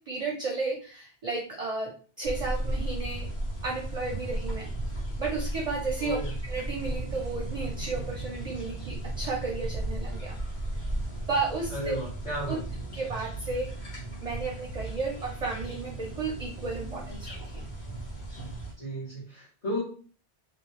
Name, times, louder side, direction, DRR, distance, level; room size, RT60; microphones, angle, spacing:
voice 1, 0.0-1.9 2.2-3.3 3.6-4.7 5.2-6.2 6.5-10.3 11.3-12.0 12.5-12.6 12.9-13.7 14.2-17.7, right 3 dB, 45° right, -2 dB, 0.6 m, -33 dB
sound 1, 2.2-18.7, right 1 dB, 80° left, 1.3 m, -35 dB
voice 2, 6.0-6.3 11.7-12.6 14.2-14.3 18.8-19.8, equal, 45° left, -10 dB, 1.2 m, -34 dB
2.7 x 2.0 x 3.1 m, 0.40 s
omnidirectional pair, 1.1 m